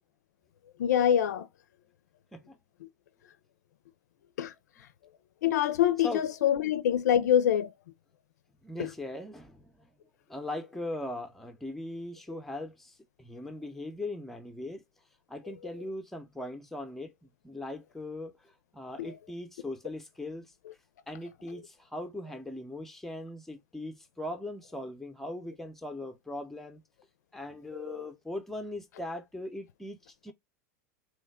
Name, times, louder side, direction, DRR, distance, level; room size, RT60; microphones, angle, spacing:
voice 1, 0.8-1.5 4.4-4.5 5.4-7.7 19.0-19.1 27.7-28.0, left 10 dB, 85° left, 0.4 m, -25 dB
voice 2, 8.6-9.9 10.3-14.8 15.3-20.5 21.1-26.8 27.3-30.3, left 1 dB, 5° left, 0.6 m, -40 dB
3.1 x 2.2 x 3.5 m
hypercardioid pair, 120°, 9 cm